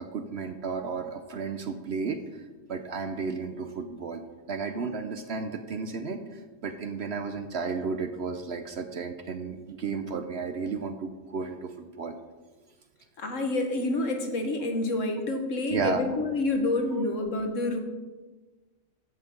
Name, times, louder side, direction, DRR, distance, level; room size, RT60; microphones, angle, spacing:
voice 1, 0.0-2.4 2.7-4.2 4.5-12.2 15.7-16.0, right 4 dB, 55° right, 8 dB, 0.9 m, -33 dB
voice 2, 13.2-17.8, left 2 dB, 65° left, 4 dB, 1.6 m, -28 dB
14.0 x 5.9 x 5.2 m, 1.3 s
omnidirectional pair, 1.5 m